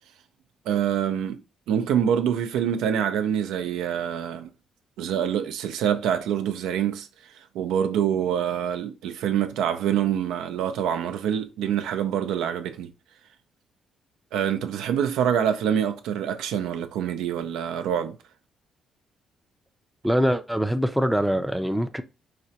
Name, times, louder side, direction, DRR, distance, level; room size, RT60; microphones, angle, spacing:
voice 1, 0.7-1.4 1.7-4.5 5.0-7.1 7.5-12.9 14.3-18.2, right 9 dB, 90° right, 0.5 m, -25 dB
voice 2, 20.0-22.0, equal, ahead, 0.4 m, -23 dB
4.8 x 2.2 x 2.8 m
cardioid pair, 90°, 0 cm